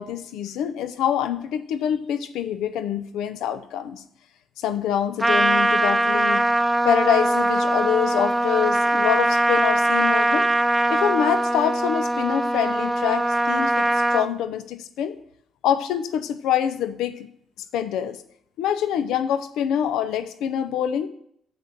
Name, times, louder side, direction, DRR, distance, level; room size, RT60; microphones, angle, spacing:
voice 1, 0.0-4.0 4.6-6.4 6.8-10.5 10.9-15.2 15.6-17.3 17.7-18.2 18.6-21.1, left 9 dB, 90° left, 10 dB, 0.7 m, -25 dB
Trumpet, 5.2-14.3, right 1 dB, 5° right, 0.7 m, -21 dB
6.5 x 6.1 x 6.7 m, 0.70 s
cardioid pair, 90°, 0 cm